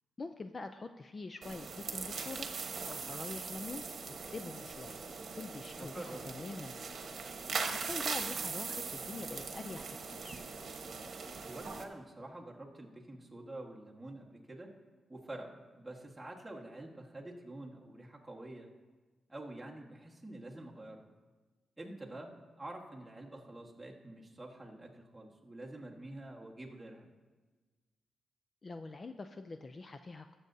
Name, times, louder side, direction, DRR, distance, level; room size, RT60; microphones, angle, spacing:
voice 1, 0.2-2.5 2.9-3.8 4.2-5.0 5.3-6.8 7.7-10.4 28.6-30.3, left 3 dB, 30° left, 8 dB, 0.4 m, -45 dB
sound 1, 1.4-11.8, right 5 dB, 55° right, 1.2 m, -40 dB
voice 2, 5.8-6.2 11.4-14.7 15.1-18.7 19.3-21.1 21.8-27.1, right 1 dB, 10° right, -2 dB, 1.5 m, -47 dB
19.5 x 7.8 x 2.7 m, 1.3 s
wide cardioid pair, 135°, 0 cm